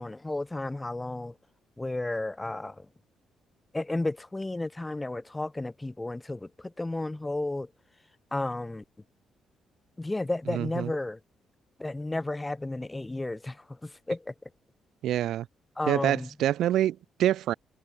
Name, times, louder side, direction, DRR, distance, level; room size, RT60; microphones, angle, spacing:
voice 1, 0.0-1.3 1.8-2.9 3.7-7.7 8.3-8.8 10.0-11.2 11.8-14.3 15.8-16.3, left 2 dB, 15° left, 2.0 m, -33 dB
voice 2, 10.5-10.9 15.0-15.5 15.9-17.5, right 12 dB, 80° right, 1.1 m, -26 dB
cardioid pair, 90°, 0 cm